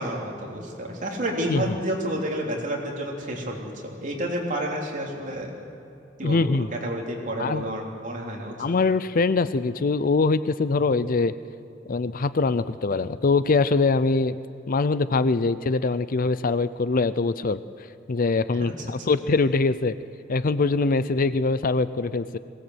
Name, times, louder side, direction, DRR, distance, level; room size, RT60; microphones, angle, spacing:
voice 1, 0.0-5.5 6.2-8.6 18.6-18.7, right 1 dB, 45° right, -1 dB, 3.5 m, -30 dB
voice 2, 1.5-1.8 6.2-6.7 7.4-7.6 8.6-11.3 11.9-14.4 14.7-17.6 18.1-19.9 20.3-22.4, left 3 dB, 45° left, 15 dB, 0.5 m, -23 dB
21.5 x 17.5 x 8.1 m, 2.8 s
head